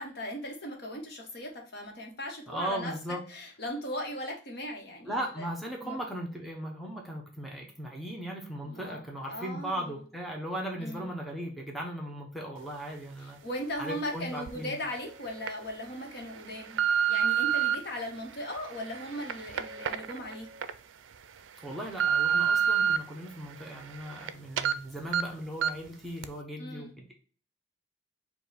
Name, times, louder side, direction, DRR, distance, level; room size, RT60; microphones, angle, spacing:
voice 1, 0.0-2.9 3.3-5.5 5.8-6.0 8.6-9.0 9.2-9.9 10.8-11.1 13.2-16.8 17.1-20.5 26.6-26.9, left 1 dB, 55° left, 2 dB, 1.1 m, -38 dB
voice 2, 2.5-3.2 5.0-13.4 13.8-14.8 21.6-27.1, right 1 dB, ahead, -2 dB, 0.8 m, -37 dB
sound 1, 14.5-14.6 15.2-15.5 16.1-17.7 18.4-20.7 21.1-21.2 21.7-23.0 23.4-24.3 24.6-24.7 25.1-25.2 25.6-25.9 26.2-26.3, right 8 dB, 90° right, 0.4 m, -28 dB
5.0 x 2.4 x 4.0 m, 0.41 s
head